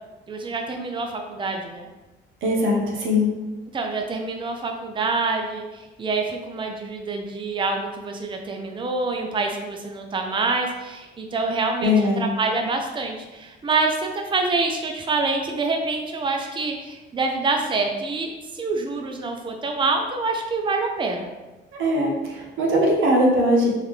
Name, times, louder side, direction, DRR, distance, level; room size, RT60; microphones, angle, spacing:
voice 1, 0.3-1.9 3.7-18.3 18.5-21.3, right 3 dB, 25° right, 3 dB, 0.5 m, -26 dB
voice 2, 2.4-3.3 11.8-12.2 21.7-23.7, left 1 dB, 85° right, -1 dB, 1.1 m, -20 dB
3.7 x 3.5 x 3.2 m, 1.1 s
cardioid pair, 90°, 20 cm